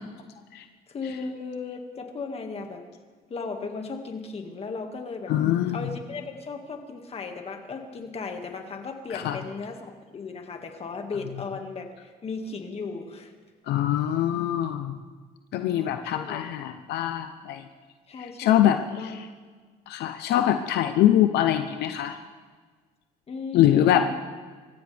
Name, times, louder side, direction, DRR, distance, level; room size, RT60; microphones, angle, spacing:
voice 1, 0.9-2.8 3.3-5.4 5.7-13.3 15.6-16.5 18.1-19.2 23.3-24.1, left 4 dB, 35° left, 4 dB, 2.0 m, -36 dB
voice 2, 5.3-5.8 9.1-9.4 13.7-15.0 15.5-17.6 18.4-19.2 19.9-22.2 23.5-24.1, left 11 dB, 80° left, 8 dB, 0.8 m, -23 dB
25.5 x 14.5 x 3.5 m, 1.5 s
cardioid pair, 110°, 17 cm